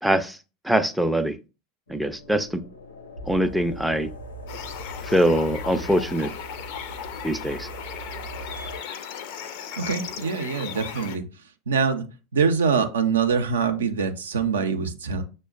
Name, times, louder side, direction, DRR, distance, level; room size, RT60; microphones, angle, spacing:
voice 1, 0.0-0.4 0.6-1.4 1.9-2.6 3.2-4.1 5.0-6.3 7.2-7.7, equal, ahead, 8 dB, 0.4 m, -23 dB
sound 1, 1.9-8.8, right 1 dB, 85° left, 0.8 m, -40 dB
sound 2, 4.5-11.2, left 8 dB, 55° left, 0.5 m, -36 dB
voice 2, 9.8-11.3 11.7-12.1 12.3-15.2, right 5 dB, 75° right, 7 dB, 0.4 m, -24 dB
6.1 x 2.1 x 2.4 m, 0.31 s
figure-of-eight pair, 80°, 0 cm